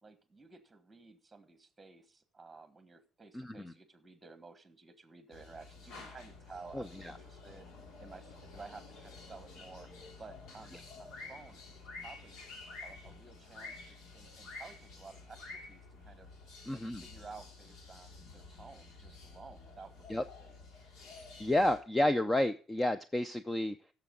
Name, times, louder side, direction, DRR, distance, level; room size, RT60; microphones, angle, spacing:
voice 1, 0.0-7.7 8.0-9.9 10.2-11.6 12.0-12.4 12.8-16.3 16.7-20.6, right 4 dB, 15° right, 11 dB, 1.5 m, -53 dB
voice 2, 3.3-3.7 6.7-7.1 16.7-17.0 20.1-20.2 21.0-23.8, left 1 dB, 10° left, 11 dB, 0.5 m, -31 dB
sound 1, 5.3-21.8, left 3 dB, 80° left, 3.0 m, -51 dB
16.0 x 7.0 x 3.8 m, 0.39 s
cardioid pair, 140°, 0 cm